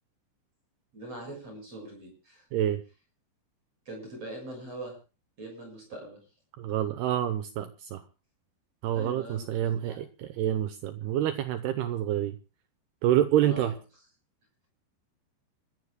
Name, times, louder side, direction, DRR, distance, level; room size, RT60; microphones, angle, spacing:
voice 1, 0.9-2.4 3.9-5.0 5.4-6.2 8.9-10.0 13.4-13.7, right 1 dB, 35° right, 2 dB, 7.5 m, -42 dB
voice 2, 2.5-2.8 6.6-8.0 8.8-12.4 13.0-13.8, right 11 dB, 75° right, 9 dB, 2.6 m, -27 dB
29.0 x 15.0 x 2.2 m, 0.32 s
omnidirectional pair, 5.2 m